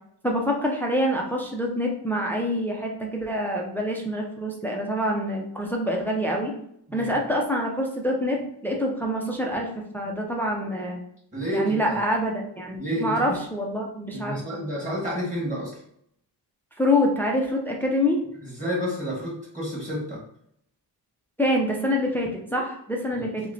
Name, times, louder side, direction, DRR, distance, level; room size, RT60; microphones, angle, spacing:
voice 1, 0.2-6.5 6.9-9.7 9.9-11.0 11.5-14.3 16.8-18.2 21.4-23.4, equal, 5° left, 0 dB, 0.4 m, -26 dB
voice 2, 11.3-12.0 12.8-13.4 14.1-15.7 18.4-20.2 23.1-23.2, equal, 20° right, -5 dB, 1.3 m, -30 dB
5.5 x 2.1 x 2.6 m, 0.71 s
wide cardioid pair, 170°, 41 cm